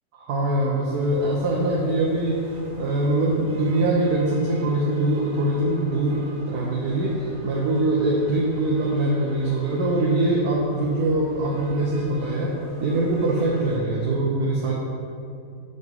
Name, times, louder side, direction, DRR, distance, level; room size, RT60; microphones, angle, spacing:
voice 1, 0.3-2.5 2.8-14.7, right 2 dB, 85° right, -4 dB, 1.4 m, -23 dB
sound 1, 0.9-13.8, equal, 35° right, 1.2 m, -44 dB
6.2 x 5.3 x 5.4 m, 2.7 s
omnidirectional pair, 1.6 m